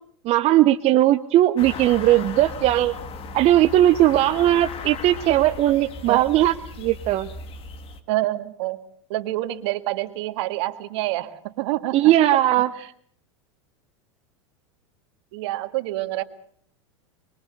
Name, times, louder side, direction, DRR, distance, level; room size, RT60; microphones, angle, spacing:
voice 1, 0.2-2.9 3.3-7.3 11.9-12.7, right 14 dB, 45° right, 8 dB, 1.0 m, -18 dB
sound 1, 1.6-8.0, left 4 dB, 40° left, 2.5 m, -37 dB
voice 2, 8.1-8.8 9.1-12.4 15.3-16.2, right 16 dB, 65° right, 10 dB, 1.8 m, -27 dB
24.0 x 23.0 x 6.7 m, 0.62 s
hypercardioid pair, 100°, 16 cm